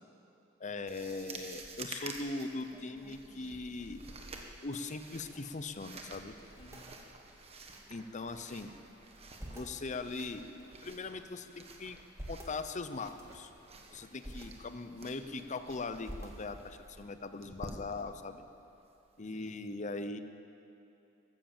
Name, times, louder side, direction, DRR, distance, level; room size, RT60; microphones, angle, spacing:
voice 1, 0.6-4.0 4.6-6.3 7.9-8.7 9.5-10.5 10.8-12.0 12.3-13.5 13.9-18.4 19.2-20.2, left 3 dB, 35° left, 10 dB, 0.7 m, -40 dB
sound 1, 0.9-19.3, right 3 dB, 30° right, 1.3 m, -51 dB
sound 2, 2.1-5.7 5.9-6.0 6.3-6.9 7.6-8.6 9.0-9.8 10.4-11.3 11.8-12.6 13.1-13.5 14.0-14.5 14.9-15.6 16.0-16.8, equal, 15° right, 2.0 m, -51 dB
voice 2, 6.5-6.9 14.0-14.4 19.2-19.9, left 1 dB, 60° left, 0 dB, 2.3 m, -58 dB
15.0 x 13.0 x 7.3 m, 2.8 s
head